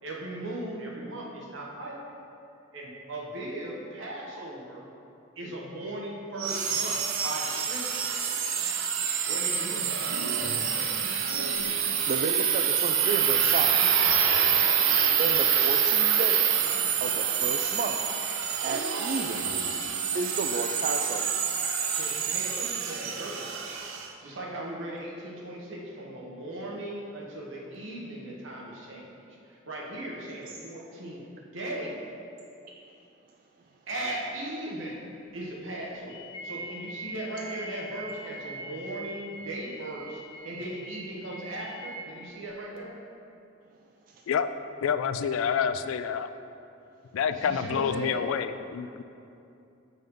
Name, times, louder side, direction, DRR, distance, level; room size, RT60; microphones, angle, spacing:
voice 1, 0.0-2.2 2.7-4.9 5.3-8.4 9.2-10.3 10.7-11.1 21.9-23.6 24.2-29.2 29.4-31.2 31.5-32.0 33.9-35.0 35.3-43.0 47.2-48.2, right 1 dB, 65° right, -3 dB, 1.3 m, -38 dB
sound 1, 6.4-24.1, right 8 dB, 90° right, 0.6 m, -26 dB
voice 2, 12.1-13.8 15.2-16.4 17.0-18.0 18.6-19.5 20.1-21.3 44.1-44.2, right 4 dB, 40° right, 2 dB, 0.3 m, -32 dB
sound 2, 36.1-42.0, right 1 dB, 25° left, 0.8 m, -42 dB
voice 3, 44.8-46.3 47.1-49.0, left 7 dB, 75° left, 11 dB, 0.3 m, -28 dB
7.6 x 5.4 x 3.8 m, 2.7 s
head